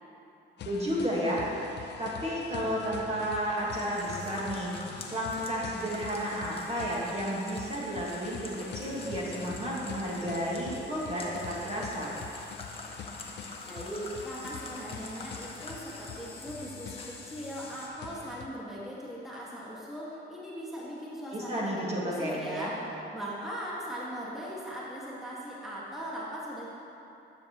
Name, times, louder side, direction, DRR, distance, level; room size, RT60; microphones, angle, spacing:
sound 1, 0.6-18.5, left 7 dB, 60° left, 0.5 m, -45 dB
voice 1, 0.6-1.4 2.0-4.8 5.1-12.1 21.3-22.7, equal, 30° right, -6 dB, 1.6 m, -32 dB
sound 2, 3.7-17.9, left 2 dB, 30° left, 1.0 m, -46 dB
voice 2, 13.7-26.7, equal, ahead, -7 dB, 1.6 m, -39 dB
10.0 x 6.6 x 3.0 m, 2.9 s
cardioid pair, 90°, 20 cm